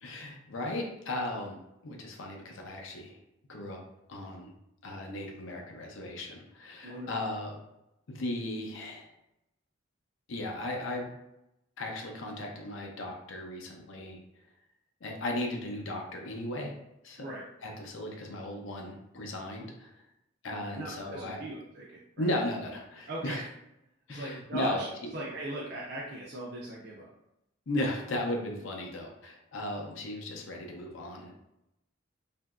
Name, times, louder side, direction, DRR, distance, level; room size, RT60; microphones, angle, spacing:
voice 1, 0.0-3.2 3.5-3.8 4.1-4.5 4.8-7.6 8.1-9.1 10.3-11.1 11.8-14.2 15.0-16.7 17.0-17.2 17.6-20.0 20.4-21.4 22.2-23.4 24.1-24.8 27.7-31.5, left 1 dB, 70° left, 1 dB, 0.5 m, -36 dB
voice 2, 6.8-7.2 17.2-17.5 20.7-22.3 23.1-23.5 24.1-24.9 25.1-27.1, right 1 dB, 55° right, -4 dB, 0.4 m, -39 dB
2.8 x 2.6 x 2.3 m, 0.87 s
head